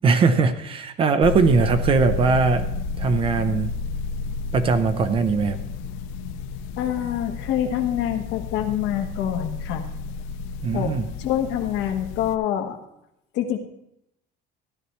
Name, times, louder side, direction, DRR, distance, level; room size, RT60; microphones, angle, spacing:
voice 1, 0.0-2.7 3.0-3.7 4.5-5.6 10.6-11.1, right 4 dB, 25° right, 10 dB, 0.5 m, -20 dB
sound 1, 1.2-12.3, left 4 dB, 85° left, 0.6 m, -31 dB
voice 2, 6.8-9.8 10.7-12.8 13.3-13.6, left 10 dB, 65° left, 5 dB, 1.3 m, -26 dB
15.5 x 11.5 x 3.1 m, 0.81 s
cardioid pair, 180°, 20 cm